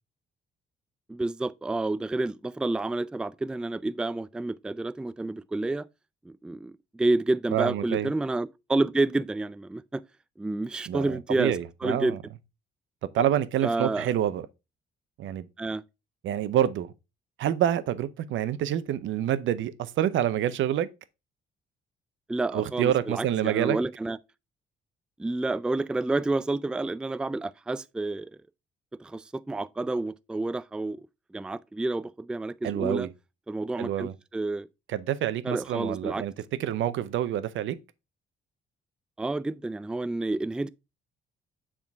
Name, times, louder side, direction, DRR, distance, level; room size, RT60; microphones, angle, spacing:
voice 1, 1.1-5.9 6.3-10.0 10.4-11.5 11.8-12.2 13.6-14.1 15.6-15.8 22.3-24.2 25.2-28.3 29.0-31.1 31.3-33.1 33.5-34.7 35.4-36.2 39.2-40.7, right 2 dB, 5° right, 0.3 m, -29 dB
voice 2, 7.5-8.1 10.9-12.2 13.1-14.5 15.2-15.5 16.2-16.9 17.4-20.9 22.5-23.8 32.6-33.1 33.8-34.1 34.9-36.3 36.6-37.8, right 11 dB, 75° right, 0.7 m, -27 dB
7.3 x 3.8 x 4.6 m
cardioid pair, 90°, 20 cm